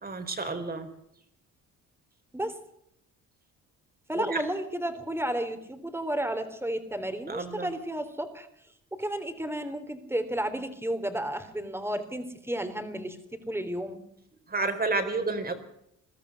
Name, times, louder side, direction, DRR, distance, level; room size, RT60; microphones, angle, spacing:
voice 1, 0.0-0.9 4.2-4.4 7.3-7.7 14.5-15.5, right 3 dB, 30° right, 7 dB, 4.3 m, -30 dB
voice 2, 4.1-8.5 8.9-13.2 13.5-14.0, right 1 dB, 10° right, 9 dB, 3.6 m, -32 dB
22.0 x 13.5 x 9.7 m, 0.76 s
cardioid pair, 90°, 30 cm